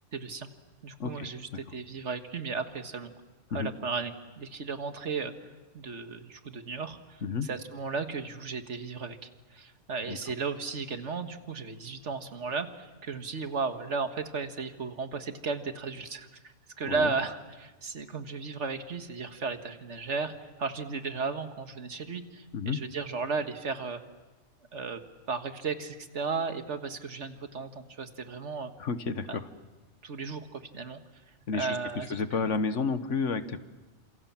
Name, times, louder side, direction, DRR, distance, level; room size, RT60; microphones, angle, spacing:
voice 1, 0.1-0.5 0.8-3.1 3.5-5.3 5.7-24.0 24.7-25.0 25.3-28.7 29.3-29.4 30.0-31.0 31.5-32.5, right 4 dB, 70° right, 8 dB, 1.9 m, -35 dB
voice 2, 28.8-29.4 31.5-31.7 32.1-33.6, left 5 dB, 80° left, 11 dB, 1.6 m, -30 dB
29.5 x 27.0 x 7.4 m, 1.2 s
omnidirectional pair, 1.2 m